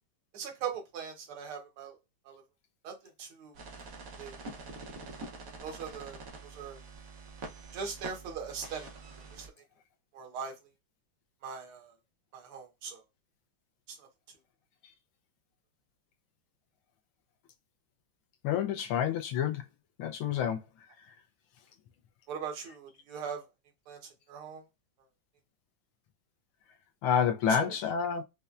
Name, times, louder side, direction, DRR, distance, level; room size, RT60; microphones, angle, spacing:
voice 1, 0.3-2.0 2.3-2.4 2.8-3.6 4.2-4.4 5.6-6.8 7.7-8.9 9.1-9.5 10.1-10.5 11.4-11.9 12.3-13.0 13.9-14.1 22.3-23.4 23.9-24.0 24.3-24.6 27.6-27.7, right 6 dB, 80° right, 1.9 m, -40 dB
sound 1, 3.5-9.5, right 3 dB, 60° right, 1.0 m, -46 dB
voice 2, 18.4-19.6 20.0-20.6 27.0-28.2, left 8 dB, 80° left, 1.5 m, -28 dB
5.4 x 2.2 x 2.4 m
omnidirectional pair, 2.4 m